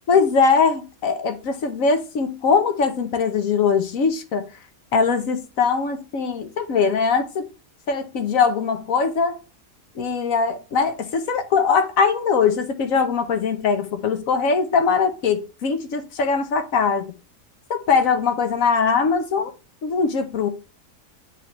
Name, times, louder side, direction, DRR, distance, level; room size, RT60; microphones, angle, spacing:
voice 1, 0.1-4.5 4.9-7.5 7.9-9.4 9.9-17.1 17.7-19.5 19.8-20.5, left 5 dB, 80° left, 1.3 m, -21 dB
8.5 x 3.7 x 3.1 m
omnidirectional pair, 1.4 m